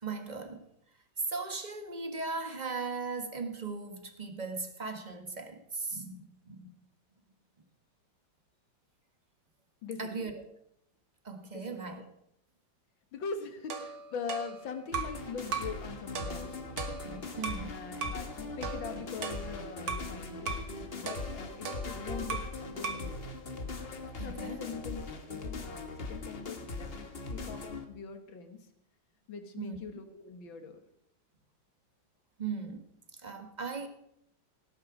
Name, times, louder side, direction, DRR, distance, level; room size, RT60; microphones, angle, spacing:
voice 1, 0.0-0.7 1.3-6.7 10.0-10.4 11.2-12.1 17.0-17.8 24.2-24.7 29.6-29.8 32.4-32.9 33.1-33.9, right 4 dB, 25° right, 6 dB, 1.5 m, -38 dB
voice 2, 9.8-10.3 11.5-11.7 13.1-16.6 17.7-20.6 20.9-23.3 24.2-28.6 29.3-30.8, left 5 dB, 90° left, 7 dB, 2.3 m, -42 dB
sound 1, 13.7-15.2 15.5-15.8 16.2-17.7 18.0-18.3 18.6-20.1 20.5-20.7 21.1-22.6 22.8-23.1, right 5 dB, 65° right, 2.0 m, -38 dB
sound 2, 14.9-27.8, left 3 dB, 35° left, 1.4 m, -40 dB
18.0 x 9.7 x 5.0 m, 0.75 s
omnidirectional pair, 2.1 m